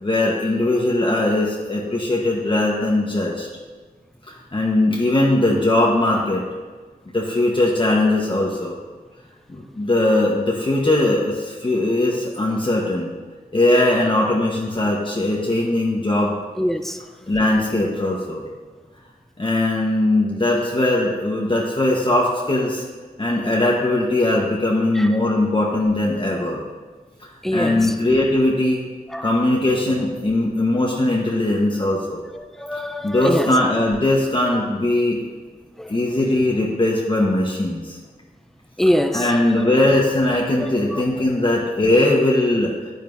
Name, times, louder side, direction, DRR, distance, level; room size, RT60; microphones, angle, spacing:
voice 1, 0.0-3.5 4.3-6.4 7.1-8.8 9.5-13.1 13.5-16.3 17.3-18.4 19.4-22.8 23.2-26.6 27.2-28.9 29.2-32.2 33.0-35.2 35.9-38.0 39.1-42.7, left 1 dB, 35° left, -3 dB, 1.1 m, -20 dB
voice 2, 16.6-17.0 25.0-25.1 27.4-27.8 29.1-29.3 31.9-32.0 32.6-33.5 35.8-35.9 38.8-39.6 40.6-41.0, equal, ahead, 6 dB, 0.6 m, -23 dB
10.5 x 9.1 x 2.6 m, 1.4 s
wide cardioid pair, 65°, 16 cm